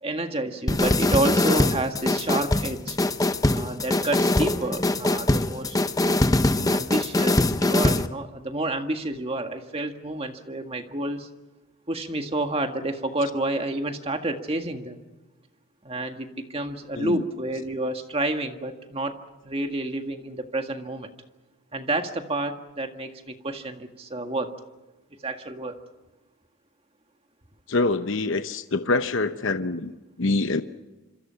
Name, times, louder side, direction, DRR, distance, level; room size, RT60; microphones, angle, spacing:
voice 1, 0.0-3.0 3.5-5.8 6.7-11.3 11.9-15.0 15.8-19.1 19.4-21.1 21.7-24.5 25.2-25.8, right 2 dB, 25° right, 5 dB, 1.8 m, -29 dB
sound 1, 0.7-8.1, left 2 dB, 15° left, 0.7 m, -22 dB
voice 2, 27.7-29.9 30.2-30.6, left 3 dB, 60° left, 9 dB, 0.8 m, -25 dB
26.5 x 26.5 x 5.8 m, 1.1 s
head